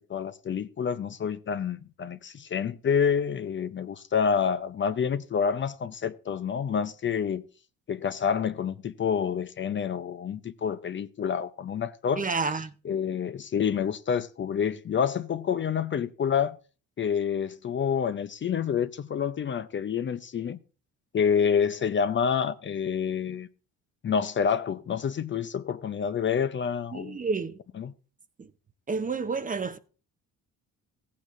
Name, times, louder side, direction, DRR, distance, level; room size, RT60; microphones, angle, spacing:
voice 1, 0.1-7.4 7.9-12.2 12.8-16.6 17.0-20.6 21.1-23.5 24.0-27.2 27.8-27.9, left 7 dB, 35° left, 0.6 m, -28 dB
voice 2, 12.2-12.7 26.9-27.6 28.4-28.5 28.9-29.8, right 4 dB, 25° right, 0.7 m, -30 dB
15.0 x 8.6 x 2.6 m
supercardioid pair, 75°, 33 cm